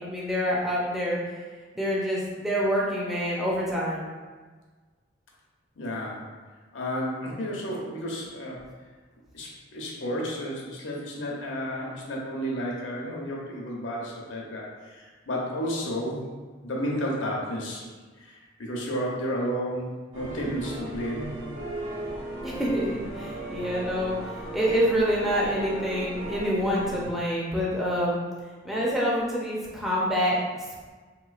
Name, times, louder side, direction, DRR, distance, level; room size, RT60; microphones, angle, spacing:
voice 1, 0.0-1.4 1.7-4.0 22.4-24.2 24.5-28.2 28.6-30.9, equal, ahead, -6 dB, 0.4 m, -27 dB
voice 2, 5.8-6.3 6.7-8.6 9.3-16.2 16.6-17.9 18.2-21.3, equal, 75° left, -3 dB, 0.7 m, -32 dB
sound 1, 20.1-27.1, right 1 dB, 70° right, 1.2 m, -36 dB
3.5 x 3.0 x 2.4 m, 1.4 s
head